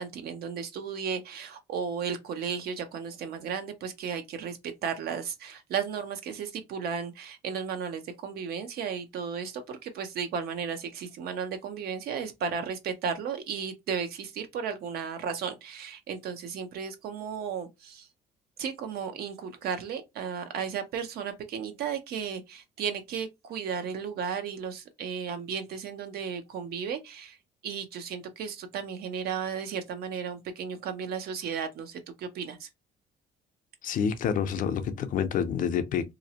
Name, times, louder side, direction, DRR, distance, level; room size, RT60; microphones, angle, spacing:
voice 1, 0.0-18.1 18.6-27.4 27.6-32.7, right 6 dB, 65° right, 0.6 m, -34 dB
voice 2, 33.8-36.1, left 7 dB, 55° left, 0.5 m, -28 dB
2.5 x 2.0 x 2.7 m
cardioid pair, 110°, 17 cm